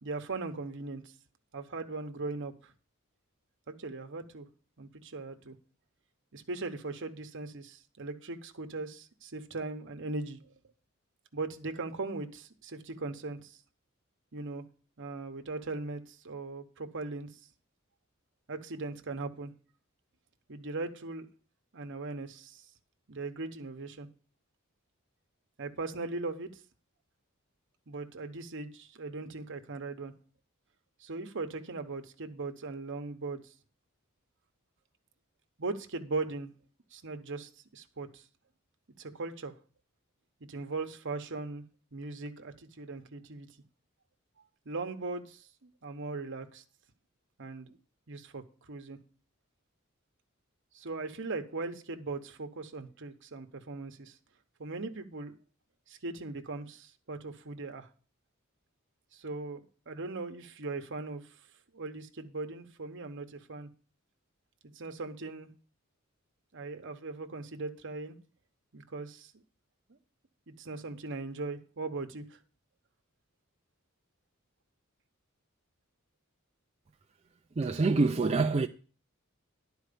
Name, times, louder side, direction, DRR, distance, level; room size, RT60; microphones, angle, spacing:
voice 1, 0.0-1.1 1.5-2.7 3.7-4.5 4.8-5.5 6.3-10.5 11.3-13.6 14.3-14.6 15.0-17.3 18.5-19.5 20.5-21.3 21.7-22.6 23.1-24.1 25.6-26.5 27.9-30.1 31.0-33.5 35.6-36.5 36.9-38.2 39.0-39.5 40.5-41.6 41.9-43.5 44.7-46.6 47.4-47.8 48.1-49.0 50.7-54.2 54.6-55.3 55.9-57.9 59.1-59.6 59.9-61.3 61.7-63.7 64.7-65.5 66.5-68.2 68.7-69.3 70.5-72.4, right 3 dB, 60° right, 1.0 m, -39 dB
voice 2, 77.6-78.7, right 3 dB, 30° right, 0.4 m, -26 dB
11.0 x 4.5 x 6.8 m
head